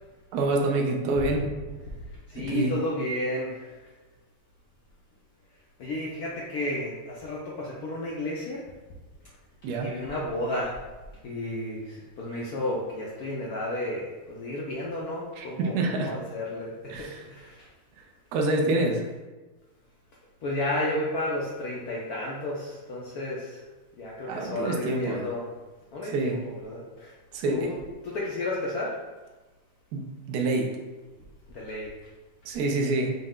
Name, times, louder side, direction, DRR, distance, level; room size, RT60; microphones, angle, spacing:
voice 1, 0.3-1.5 2.4-2.7 9.6-9.9 15.4-16.1 16.9-17.2 18.3-19.0 24.3-25.2 26.0-26.4 27.3-27.8 29.9-30.7 32.4-33.1, right 2 dB, 80° right, 2 dB, 0.9 m, -27 dB
voice 2, 2.3-3.7 5.8-8.6 9.8-10.8 11.2-17.6 20.4-23.6 24.0-25.4 25.9-27.1 27.4-27.7 28.0-29.0 31.5-31.9, left 1 dB, 75° left, -4 dB, 0.8 m, -32 dB
5.4 x 2.1 x 3.6 m, 1.2 s
omnidirectional pair, 2.3 m